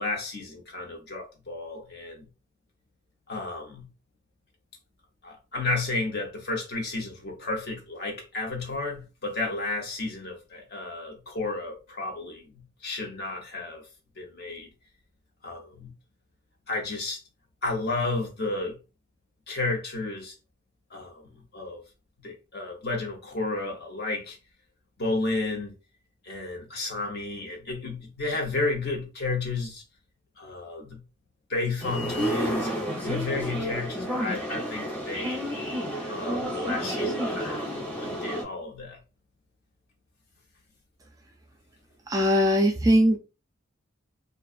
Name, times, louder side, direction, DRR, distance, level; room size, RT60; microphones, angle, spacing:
voice 1, 0.0-2.2 3.3-3.9 5.2-12.4 12.8-13.8 14.2-14.7 15.4-15.9 16.7-17.2 17.6-18.8 19.5-20.3 20.9-21.8 22.2-24.4 25.0-25.7 26.2-29.8 30.4-31.0 31.5-32.7 33.0-35.4 36.1-39.0, left 3 dB, 55° left, 0.8 m, -32 dB
sound 1, 31.8-38.4, equal, 5° left, 0.8 m, -30 dB
voice 2, 42.1-43.2, equal, 15° right, 0.3 m, -20 dB
2.5 x 2.3 x 2.4 m
head